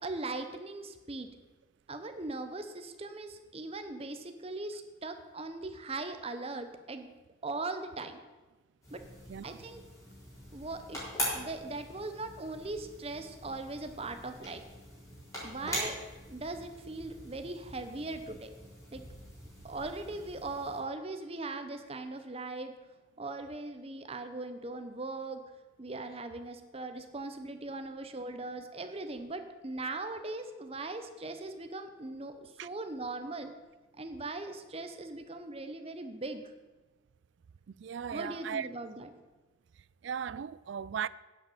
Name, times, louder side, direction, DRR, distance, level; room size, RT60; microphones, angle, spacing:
voice 1, 0.0-1.3 1.9-7.1 7.4-8.2 8.9-9.0 9.4-9.8 10.5-11.0 11.3-14.6 15.4-16.0 16.3-18.5 18.9-19.0 19.6-22.7 23.2-25.4 25.8-33.5 34.0-36.4 38.1-39.1, right 2 dB, 30° right, 0.9 m, -39 dB
sound 1, 8.8-20.8, equal, 15° left, 4.1 m, -42 dB
voice 2, 37.7-38.7 40.0-41.1, right 7 dB, 60° right, 0.3 m, -37 dB
10.0 x 8.4 x 6.7 m
head